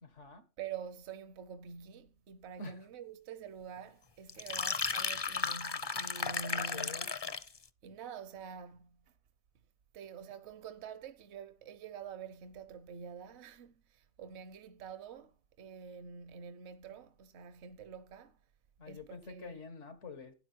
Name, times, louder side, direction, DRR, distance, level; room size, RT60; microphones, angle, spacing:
voice 1, 0.0-0.4 2.6-2.7 6.5-7.1 18.8-20.3, left 3 dB, 90° left, 1.9 m, -47 dB
voice 2, 0.6-7.1 7.8-9.1 9.9-18.4 18.9-19.6, right 6 dB, 70° right, 1.0 m, -47 dB
sound 1, 4.3-7.6, left 5 dB, 30° left, 0.5 m, -35 dB
12.5 x 9.6 x 4.5 m
omnidirectional pair, 1.2 m